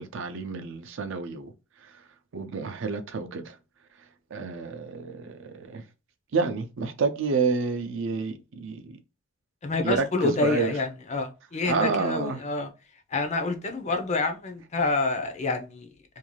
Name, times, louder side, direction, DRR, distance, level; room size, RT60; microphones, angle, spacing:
voice 1, 0.0-2.1 2.3-3.6 4.0-5.9 6.3-9.0 9.8-10.8 11.7-12.4, right 4 dB, 60° right, 0.5 m, -29 dB
voice 2, 9.6-12.7 13.1-15.9, left 3 dB, 35° left, 0.5 m, -28 dB
2.6 x 2.3 x 3.0 m
head